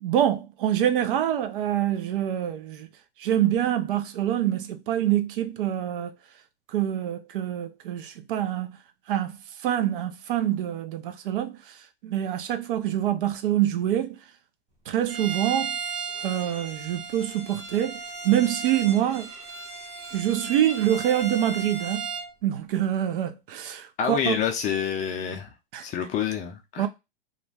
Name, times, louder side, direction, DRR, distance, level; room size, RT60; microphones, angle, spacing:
voice 1, 0.0-2.9 3.2-6.1 6.7-8.8 9.1-9.3 9.6-11.8 12.0-14.2 14.9-15.8 16.2-19.3 20.1-22.1 22.4-24.4 25.7-25.9 26.8-26.9, right 11 dB, 60° right, 0.5 m, -25 dB
Bowed string instrument, 15.1-22.3, right 5 dB, 20° right, 0.9 m, -35 dB
voice 2, 24.0-25.5 25.8-26.9, left 8 dB, 25° left, 0.4 m, -27 dB
2.5 x 2.2 x 3.2 m
hypercardioid pair, 120°, 30 cm